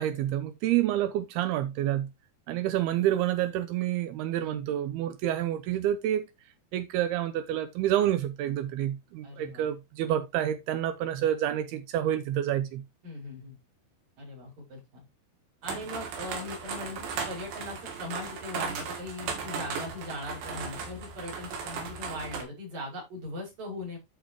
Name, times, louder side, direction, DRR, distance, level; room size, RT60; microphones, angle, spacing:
voice 1, 0.0-2.1 2.5-6.3 6.7-12.8, right 12 dB, 85° right, 2.3 m, -28 dB
voice 2, 9.2-9.7 13.0-13.6 14.2-15.0 15.6-24.0, left 1 dB, 45° right, 7.7 m, -40 dB
sound 1, 15.6-22.4, right 5 dB, 70° right, 4.3 m, -36 dB
12.5 x 5.6 x 3.1 m
omnidirectional pair, 5.3 m